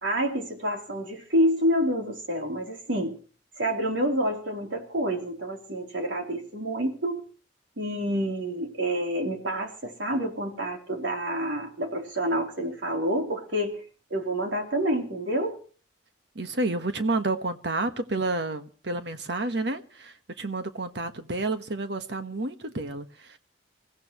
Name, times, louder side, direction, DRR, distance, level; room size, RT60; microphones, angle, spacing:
voice 1, 0.0-3.2 3.6-7.2 7.8-13.8 14.1-15.6, equal, 85° right, 3.4 m, -28 dB
voice 2, 16.3-23.4, right 2 dB, 65° right, 1.3 m, -30 dB
28.0 x 15.0 x 3.1 m
head